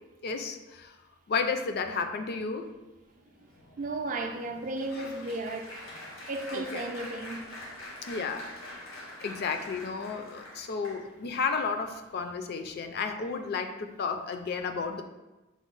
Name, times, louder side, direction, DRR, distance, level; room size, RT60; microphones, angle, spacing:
voice 1, 0.2-1.0 1.3-2.7 4.9-5.3 6.5-6.8 8.0-8.5 9.2-15.0, left 5 dB, 50° left, 0.3 m, -32 dB
Applause, 3.0-11.4 12.0-12.2 12.5-12.7, left 1 dB, 90° left, 1.1 m, -45 dB
voice 2, 3.8-5.8 6.3-7.5, right 2 dB, 40° right, 0.3 m, -34 dB
6.0 x 2.1 x 3.8 m
head